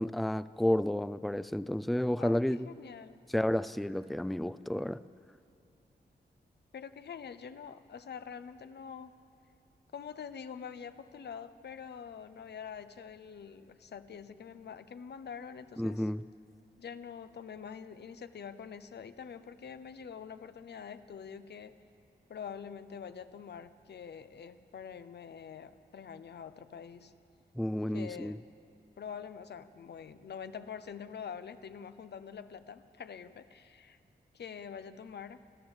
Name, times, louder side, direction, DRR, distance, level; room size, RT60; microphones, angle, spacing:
voice 1, 0.0-2.7 3.3-5.0 15.8-16.2 27.6-28.4, left 1 dB, ahead, 16 dB, 0.4 m, -31 dB
voice 2, 2.2-3.2 6.7-9.2 9.9-16.1 16.8-21.8 22.3-27.1 27.9-28.4 29.0-34.0 34.3-35.4, left 7 dB, 75° left, 11 dB, 0.9 m, -45 dB
29.5 x 13.0 x 7.3 m, 2.7 s
wide cardioid pair, 125°, 17 cm